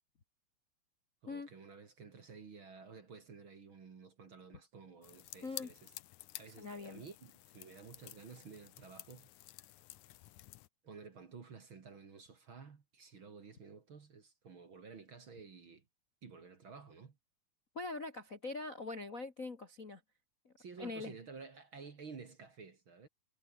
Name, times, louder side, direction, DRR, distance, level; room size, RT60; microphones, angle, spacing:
voice 1, 1.2-5.9 6.4-9.3 10.8-15.8 16.2-17.2 20.6-23.1, right 5 dB, 40° right, 2.6 m, -53 dB
sound 1, 5.0-10.7, left 16 dB, 70° left, 2.0 m, -52 dB
voice 2, 5.4-5.7 6.6-7.0 17.7-20.0 20.4-21.1, left 3 dB, 30° left, 1.6 m, -43 dB
omnidirectional pair, 4.0 m